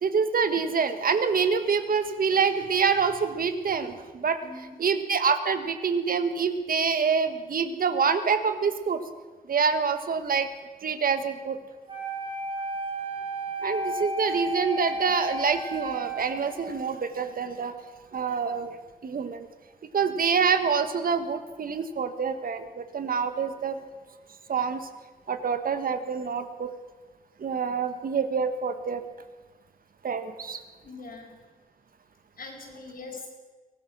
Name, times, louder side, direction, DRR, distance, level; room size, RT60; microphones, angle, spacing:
voice 1, 0.0-4.4 4.8-9.0 9.5-10.5 10.8-11.6 13.6-17.7 18.1-18.7 19.0-19.5 19.9-23.8 24.5-24.9 25.3-26.7 27.4-29.0 30.0-30.6, right 6 dB, 70° right, 9 dB, 1.5 m, -26 dB
voice 2, 4.4-4.8 30.8-31.4 32.4-33.3, left 3 dB, 70° left, 0 dB, 5.2 m, -42 dB
Wind instrument woodwind instrument, 11.9-17.0, right 1 dB, 35° right, 4.0 m, -33 dB
23.5 x 18.5 x 6.1 m, 1.3 s
wide cardioid pair, 155°, 16 cm